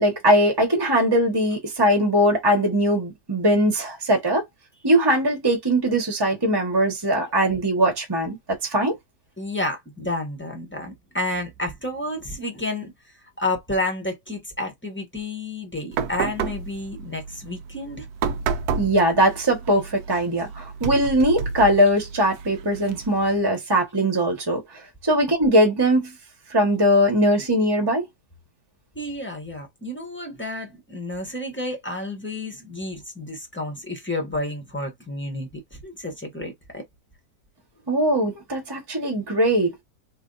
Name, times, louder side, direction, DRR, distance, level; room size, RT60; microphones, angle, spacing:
voice 1, 0.0-4.4 4.8-8.4 8.6-8.9 18.8-24.6 25.0-26.1 26.5-28.0 37.9-39.7, equal, 15° right, 1.1 m, -20 dB
voice 2, 9.4-12.9 13.4-18.1 28.9-36.8, left 1 dB, 10° left, 1.0 m, -30 dB
sound 1, 15.9-23.4, right 5 dB, 70° right, 1.0 m, -31 dB
3.1 x 2.7 x 3.9 m
omnidirectional pair, 1.8 m